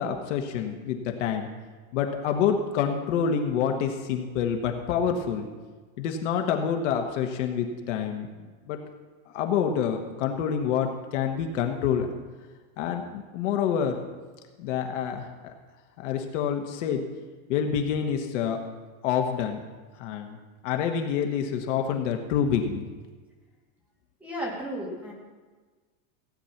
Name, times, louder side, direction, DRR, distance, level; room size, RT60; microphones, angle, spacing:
voice 1, 0.0-1.5 1.9-5.5 6.0-8.3 8.7-8.8 9.3-12.1 12.8-14.0 14.6-15.5 16.0-17.0 17.5-18.6 19.0-19.6 20.0-20.4 20.6-22.9, left 7 dB, 60° left, 4 dB, 1.4 m, -27 dB
voice 2, 24.2-25.1, equal, 5° right, -4 dB, 2.3 m, -33 dB
16.0 x 9.4 x 5.8 m, 1.4 s
supercardioid pair, 180°, 42 cm